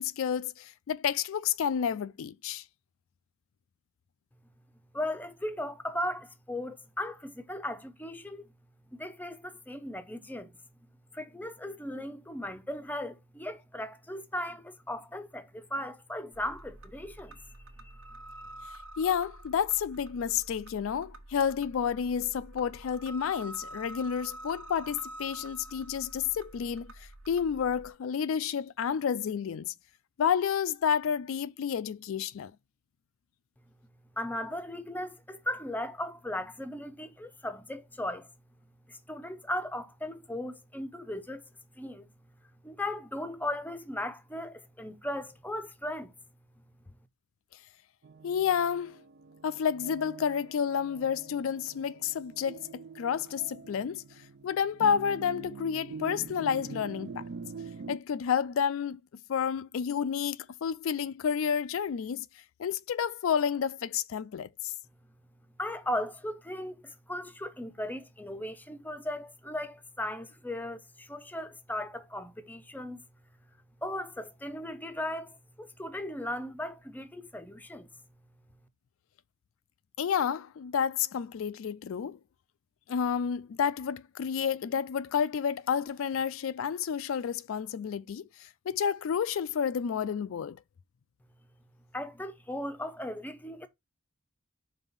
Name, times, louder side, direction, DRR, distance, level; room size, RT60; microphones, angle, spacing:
voice 1, 0.0-2.6 19.0-29.7 30.2-32.5 48.2-49.0 49.4-54.0 54.4-57.2 57.9-59.0 59.3-62.3 62.6-64.7 80.0-82.2 82.9-90.6, left 7 dB, 65° left, 0.3 m, -30 dB
voice 2, 4.9-8.5 8.9-10.6 11.1-17.4 17.8-17.9 34.2-38.3 38.9-41.4 41.8-42.1 42.6-46.1 65.6-73.0 73.8-77.9 91.9-93.7, left 1 dB, 10° left, 0.6 m, -37 dB
sound 1, 16.3-27.9, right 1 dB, 75° right, 1.1 m, -47 dB
sound 2, 48.0-58.0, right 4 dB, 50° right, 0.4 m, -45 dB
5.4 x 3.5 x 5.6 m
head